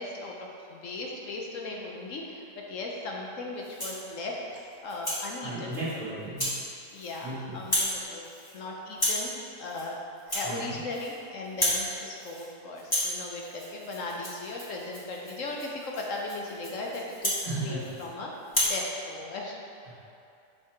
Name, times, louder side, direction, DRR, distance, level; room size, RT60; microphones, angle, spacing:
voice 1, 0.0-5.8 6.9-8.2 8.5-9.3 9.6-18.3 18.6-19.6, left 2 dB, 60° left, -1 dB, 1.0 m, -37 dB
Rattle (instrument), 3.6-4.0 4.5-5.2 5.7-5.9 6.4-6.6 6.9-7.3 7.6-8.0 8.2-8.6 8.9-9.3 9.6-9.9 10.2-11.2 11.4-11.9 12.2-12.5 12.8-18.1 18.4-18.8, left 1 dB, 15° left, 1.4 m, -32 dB
voice 2, 5.4-6.5 7.2-7.6 10.4-10.8 17.4-17.8 19.9-20.1, right 2 dB, 30° right, -8 dB, 1.9 m, -35 dB
5.9 x 5.6 x 4.6 m, 2.7 s
omnidirectional pair, 1.8 m